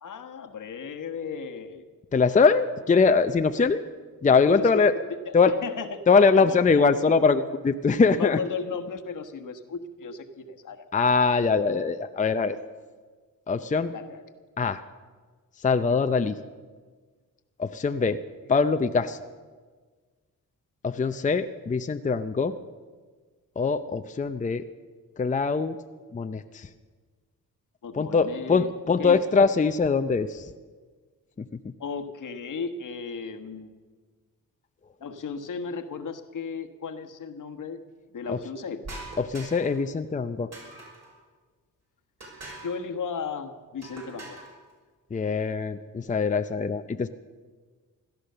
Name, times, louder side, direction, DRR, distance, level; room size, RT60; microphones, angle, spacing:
voice 1, 0.0-1.8 4.4-4.9 5.3-6.9 8.1-10.9 13.9-14.2 16.1-16.3 18.7-18.8 27.8-28.7 29.0-29.2 31.8-33.7 35.0-37.8 38.1-38.8 42.6-44.4, left 5 dB, 65° left, 7 dB, 1.3 m, -35 dB
voice 2, 2.1-3.8 4.2-4.9 5.3-5.5 6.1-8.4 10.9-12.6 13.5-13.9 14.6-14.8 15.6-16.4 17.6-18.2 18.5-19.2 20.8-22.5 23.6-24.6 25.2-25.8 26.1-26.7 27.9-30.5 38.3-38.4 39.2-40.5 45.1-47.1, left 4 dB, 25° left, 9 dB, 0.6 m, -22 dB
sound 1, 38.8-39.8 40.5-41.1 42.2-42.8 43.8-44.5, right 2 dB, 50° right, 5.7 m, -42 dB
16.5 x 12.0 x 6.7 m, 1.5 s
cardioid pair, 90°, 34 cm